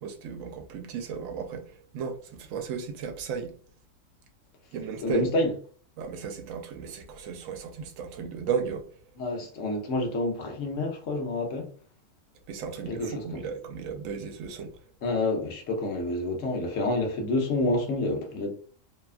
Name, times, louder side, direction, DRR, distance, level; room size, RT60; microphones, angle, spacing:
voice 1, 0.0-1.6 1.9-3.5 4.7-5.3 6.0-8.8 12.5-14.7, right 6 dB, 80° right, 0.9 m, -35 dB
voice 2, 5.0-5.5 9.2-11.7 12.9-13.4 15.0-18.5, left 2 dB, 75° left, 1.0 m, -28 dB
2.8 x 2.2 x 2.3 m
omnidirectional pair, 1.4 m